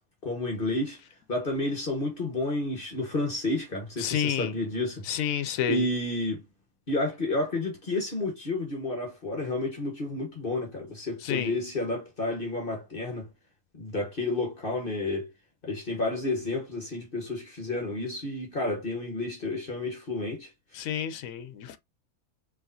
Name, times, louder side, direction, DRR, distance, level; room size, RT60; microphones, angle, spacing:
voice 1, 0.2-1.0 1.3-5.1 5.7-6.4 6.9-13.3 13.7-15.3 15.6-20.5, left 2 dB, 40° left, 1.3 m, -31 dB
voice 2, 4.0-4.5 5.0-5.8 11.2-11.5 20.7-21.8, left 9 dB, 75° left, 1.0 m, -29 dB
4.7 x 3.5 x 2.6 m
omnidirectional pair, 1.5 m